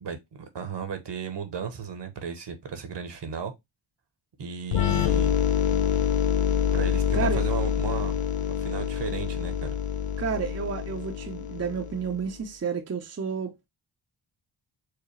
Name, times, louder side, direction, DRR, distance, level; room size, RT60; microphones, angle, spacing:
voice 1, 0.0-3.5 4.4-5.3 6.7-8.2 8.6-9.8, right 6 dB, 55° right, 1.1 m, -35 dB
sound 1, 4.7-12.3, left 8 dB, 75° left, 0.7 m, -26 dB
voice 2, 10.2-13.7, right 6 dB, 30° right, 0.7 m, -31 dB
4.8 x 2.2 x 3.1 m
cardioid pair, 55°, 50 cm